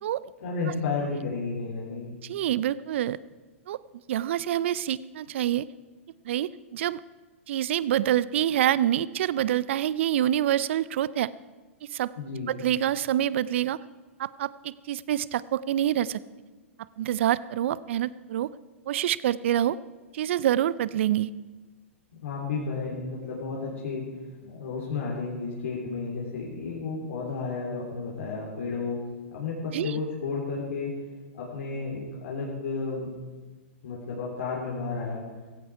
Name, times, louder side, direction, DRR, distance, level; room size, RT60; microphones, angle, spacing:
voice 1, 0.4-2.1 12.2-12.6 22.2-24.1 24.4-29.0 29.3-30.9 31.3-33.1 33.8-35.2, left 4 dB, 70° left, -4 dB, 3.5 m, -32 dB
voice 2, 2.2-3.2 3.7-3.8 4.1-5.7 6.2-7.0 7.5-11.3 11.9-12.1 12.5-13.8 14.2-16.2 17.0-18.5 18.9-19.8 20.1-21.3 29.7-30.0, right 11 dB, 60° right, 19 dB, 0.5 m, -26 dB
16.5 x 16.0 x 4.8 m, 1.3 s
hypercardioid pair, 110°, 7 cm